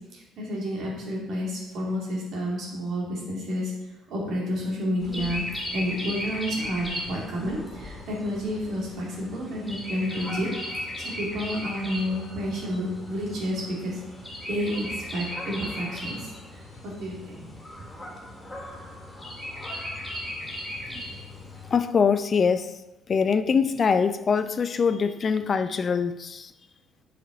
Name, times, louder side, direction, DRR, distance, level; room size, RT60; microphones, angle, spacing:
voice 1, 0.1-3.7 4.1-5.4 5.7-10.5 11.2-14.0 14.5-17.5, equal, 50° right, -3 dB, 2.5 m, -30 dB
sound 1, 5.0-21.7, left 1 dB, 15° left, 2.5 m, -37 dB
voice 2, 21.7-22.7 23.1-26.5, left 6 dB, 35° left, 11 dB, 0.4 m, -23 dB
6.7 x 5.1 x 5.6 m, 0.98 s
figure-of-eight pair, 50°, 0 cm